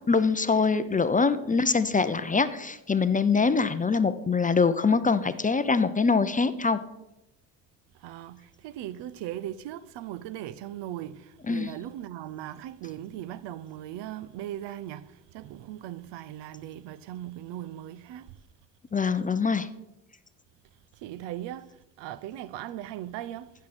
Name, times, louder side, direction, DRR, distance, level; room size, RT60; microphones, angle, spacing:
voice 1, 0.1-6.8 11.4-11.7 18.9-19.7, left 4 dB, 20° left, 0.5 m, -24 dB
voice 2, 8.0-18.3 21.0-21.7 22.0-23.5, right 12 dB, 65° right, 0.6 m, -38 dB
15.5 x 6.3 x 4.2 m
supercardioid pair, 70°, 46 cm